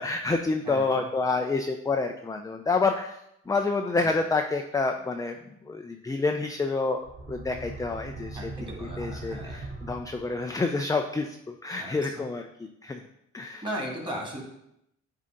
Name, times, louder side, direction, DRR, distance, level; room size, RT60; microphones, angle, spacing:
voice 1, 0.0-8.5 8.8-13.0 13.3-13.6, left 3 dB, 10° left, 5 dB, 0.4 m, -28 dB
voice 2, 0.7-1.0 4.0-4.1 8.3-9.6 11.8-12.3 13.6-14.4, equal, 15° right, -1 dB, 2.2 m, -37 dB
sound 1, 6.9-10.7, right 2 dB, 35° right, 1.0 m, -40 dB
8.4 x 2.8 x 5.1 m, 0.79 s
cardioid pair, 90°, 30 cm